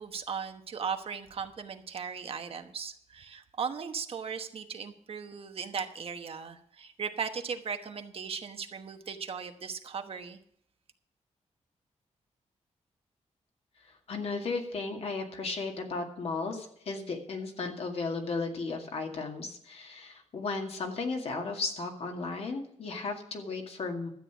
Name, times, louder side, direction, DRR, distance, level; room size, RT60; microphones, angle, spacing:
voice 1, 0.0-10.4, right 6 dB, 50° right, 7 dB, 1.1 m, -37 dB
voice 2, 14.1-24.1, left 3 dB, 55° left, 3 dB, 2.2 m, -35 dB
12.5 x 8.7 x 6.1 m, 0.68 s
wide cardioid pair, 165°, 12 cm